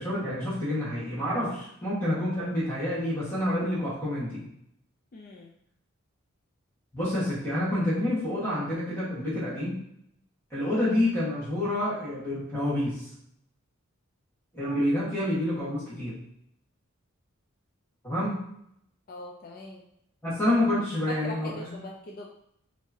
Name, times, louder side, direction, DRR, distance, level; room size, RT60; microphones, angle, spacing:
voice 1, 0.0-4.4 6.9-9.7 10.5-13.1 14.5-16.1 18.0-18.4 20.2-21.8, left 1 dB, 10° left, -9 dB, 1.4 m, -28 dB
voice 2, 5.1-5.5 19.1-19.9 20.6-20.7 21.1-22.3, left 2 dB, 40° left, -1 dB, 0.4 m, -42 dB
4.7 x 3.0 x 2.8 m, 0.73 s
head